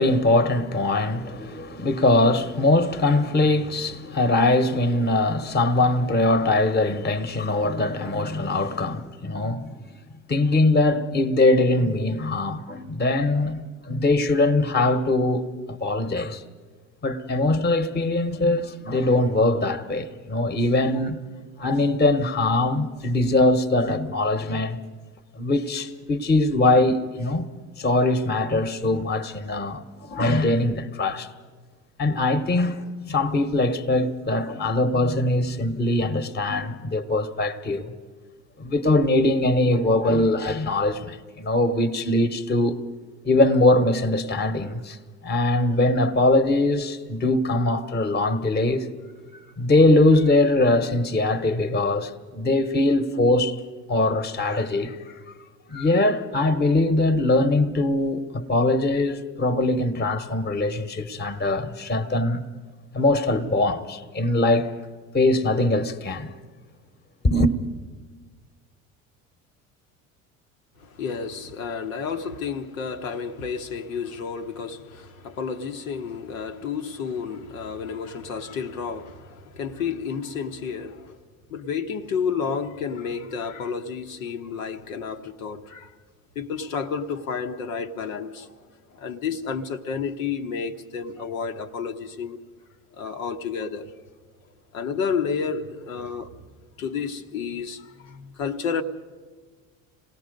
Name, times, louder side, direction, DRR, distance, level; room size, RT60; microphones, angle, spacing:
voice 1, 0.0-9.8 10.3-16.4 17.0-21.2 21.6-24.8 25.4-27.5 27.8-31.3 32.0-32.8 33.1-37.9 38.6-42.8 43.2-45.0 45.2-48.9 49.3-53.6 53.9-55.2 55.7-62.4 62.9-64.7 65.1-66.3 67.2-67.5, left 2 dB, 25° left, 1.3 m, -22 dB
voice 2, 70.8-81.2 81.5-85.9 86.3-88.5 88.9-92.4 93.0-93.9 94.7-96.3 96.8-98.8, left 6 dB, 85° left, 1.2 m, -31 dB
27.0 x 18.5 x 5.3 m
hypercardioid pair, 70°, 40 cm